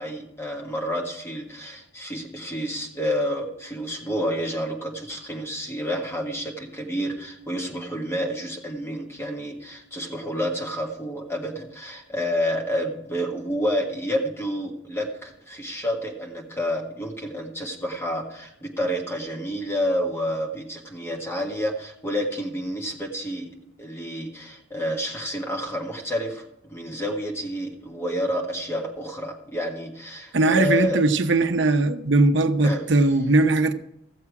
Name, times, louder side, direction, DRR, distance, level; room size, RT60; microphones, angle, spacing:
voice 1, 0.0-23.5 23.8-31.0 32.6-32.8, equal, 15° left, 1.6 m, -29 dB
voice 2, 30.3-33.7, right 2 dB, 65° right, 0.8 m, -19 dB
15.0 x 7.3 x 4.8 m
head